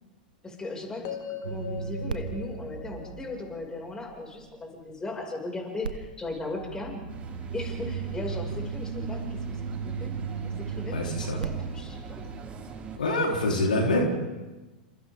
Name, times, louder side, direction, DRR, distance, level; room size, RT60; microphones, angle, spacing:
voice 1, 0.4-7.0 7.5-10.1 10.4-12.3, left 2 dB, 15° left, 1 dB, 6.1 m, -37 dB
sound 1, 1.0-5.2, left 7 dB, 45° left, 2.4 m, -41 dB
sound 2, 1.4-4.6 5.8-12.8, right 6 dB, 80° right, 1.1 m, -36 dB
sound 3, 7.1-13.0, right 4 dB, 25° right, 5.8 m, -41 dB
voice 2, 10.9-11.4 12.9-14.1, left 1 dB, 80° left, 0 dB, 4.0 m, -25 dB
29.0 x 27.5 x 3.8 m, 1.1 s
figure-of-eight pair, 95°, 5 cm